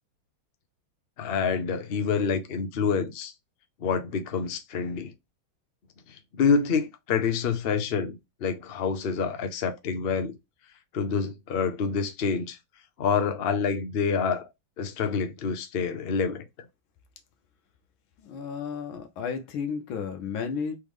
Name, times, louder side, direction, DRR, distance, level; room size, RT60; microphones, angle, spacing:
voice 1, 1.2-3.3 3.8-5.1 6.1-10.3 10.9-12.6 13.0-14.5 14.8-16.4, left 5 dB, 70° left, 0.5 m, -27 dB
voice 2, 18.2-20.8, left 6 dB, 90° left, 1.6 m, -33 dB
4.7 x 3.2 x 3.5 m
omnidirectional pair, 2.1 m